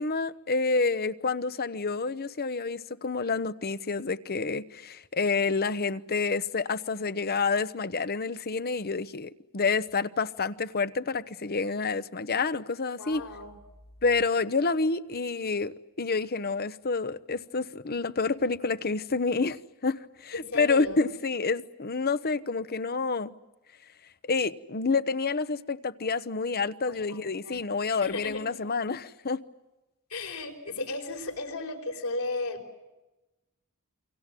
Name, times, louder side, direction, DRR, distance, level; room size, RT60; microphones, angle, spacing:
voice 1, 0.0-13.2 14.0-23.3 24.2-29.4, left 4 dB, 45° left, 1.0 m, -28 dB
voice 2, 13.0-13.6 20.3-21.0 26.9-27.6 27.9-28.6 30.1-32.8, left 2 dB, 75° left, 4.9 m, -35 dB
29.0 x 25.5 x 7.6 m
head